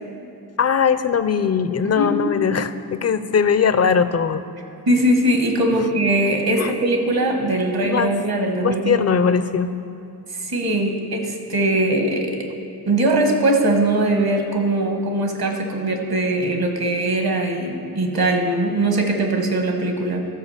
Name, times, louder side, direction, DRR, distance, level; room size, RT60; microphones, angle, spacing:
voice 1, 0.6-4.4 6.6-6.7 7.8-8.1 8.6-9.8, left 6 dB, 40° left, 12 dB, 0.5 m, -20 dB
voice 2, 4.9-9.0 10.3-12.5 12.9-20.3, right 1 dB, 65° right, 3 dB, 1.5 m, -21 dB
13.0 x 5.0 x 7.2 m, 2.8 s
wide cardioid pair, 70°, 39 cm